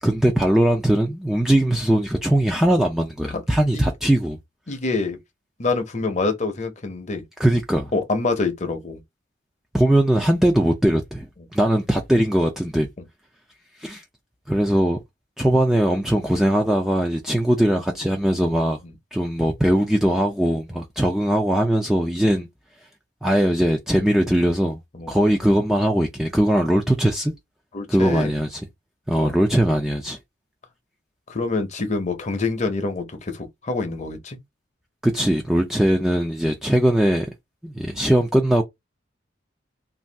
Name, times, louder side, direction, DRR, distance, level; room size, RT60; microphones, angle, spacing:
voice 1, 0.0-4.4 7.4-7.9 9.7-12.9 13.8-14.0 14.5-15.0 15.4-18.8 19.1-22.5 23.2-24.8 25.1-27.3 27.9-28.7 29.1-30.2 35.0-37.3 37.6-38.6, right 1 dB, ahead, 0.3 m, -20 dB
voice 2, 4.7-5.2 5.6-7.2 7.9-9.0 24.9-25.1 25.4-25.6 27.7-28.3 29.1-29.5 31.3-34.4, left 3 dB, 35° left, 0.6 m, -26 dB
2.6 x 2.3 x 3.3 m
head